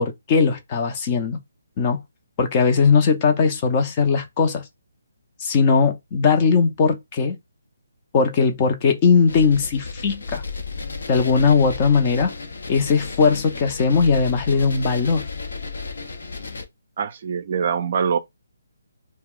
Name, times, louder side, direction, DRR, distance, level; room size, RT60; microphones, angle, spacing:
voice 1, 0.0-1.4 1.8-2.0 2.4-4.6 5.4-7.4 8.1-10.4 11.1-12.3 12.7-15.3, left 5 dB, 30° left, 0.6 m, -19 dB
sound 1, 9.3-16.6, left 4 dB, 70° left, 0.7 m, -33 dB
voice 2, 17.0-18.2, right 7 dB, 45° right, 0.4 m, -23 dB
2.3 x 2.0 x 3.7 m
figure-of-eight pair, 145°, 0 cm